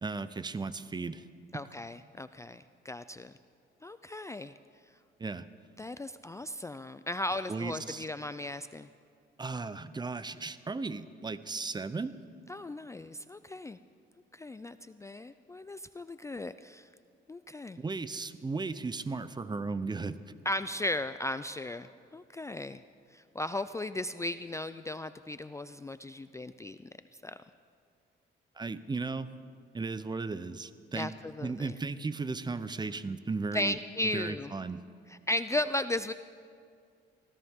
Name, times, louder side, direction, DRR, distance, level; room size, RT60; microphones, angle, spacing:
voice 1, 0.0-1.2 5.2-5.5 7.5-8.0 9.4-12.1 17.8-20.3 28.6-29.3 29.7-31.1 31.4-33.8 34.1-34.8, right 4 dB, 20° right, 14 dB, 0.6 m, -35 dB
voice 2, 1.5-3.3 3.8-4.5 5.8-8.9 12.5-13.8 14.3-16.9 17.3-17.8 20.5-22.8 23.1-26.9 27.2-27.4 30.9-31.7 33.5-34.5 35.1-36.1, left 1 dB, 15° left, 12 dB, 0.4 m, -36 dB
24.0 x 16.5 x 3.7 m, 2.2 s
cardioid pair, 90°, 20 cm